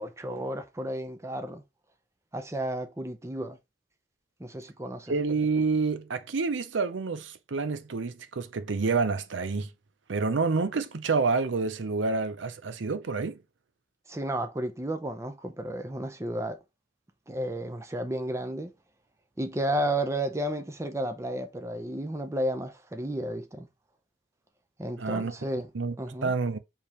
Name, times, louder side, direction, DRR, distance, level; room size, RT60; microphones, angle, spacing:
voice 1, 0.0-1.6 2.3-3.6 4.4-5.1 14.1-16.6 17.3-18.7 19.4-23.7 24.8-25.7 26.0-26.3, right 1 dB, 15° right, 0.6 m, -32 dB
voice 2, 5.1-9.7 10.1-13.4 25.0-25.3 25.7-25.9 26.2-26.6, right 4 dB, 90° right, 0.6 m, -28 dB
4.7 x 3.5 x 3.0 m
head